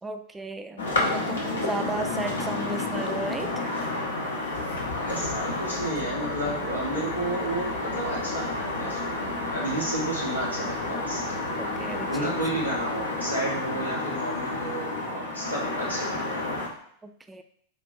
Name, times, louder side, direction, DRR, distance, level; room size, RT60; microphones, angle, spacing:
voice 1, 0.0-3.7 11.6-12.3 17.0-17.4, right 2 dB, 10° right, 8 dB, 0.3 m, -35 dB
sound 1, 0.8-16.7, left 2 dB, 70° left, 1.0 m, -30 dB
voice 2, 5.1-11.2 12.1-16.5, right 1 dB, 85° left, -5 dB, 1.6 m, -32 dB
4.9 x 3.6 x 2.7 m, 0.65 s
figure-of-eight pair, 90°, 0 cm